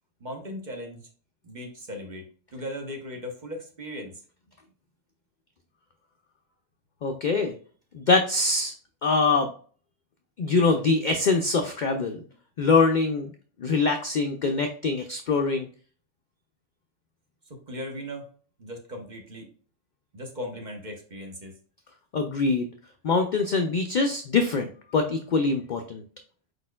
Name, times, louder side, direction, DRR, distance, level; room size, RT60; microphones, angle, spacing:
voice 1, 0.2-1.0 1.4-4.1 17.7-18.3 18.6-19.5 20.1-21.5, equal, 40° right, 2 dB, 0.9 m, -37 dB
voice 2, 7.0-7.5 7.9-8.7 9.0-9.5 10.4-12.2 12.6-13.3 13.6-15.7 22.1-22.7 23.0-26.0, left 4 dB, 60° left, 5 dB, 0.5 m, -24 dB
4.9 x 4.2 x 2.2 m, 0.43 s
omnidirectional pair, 1.3 m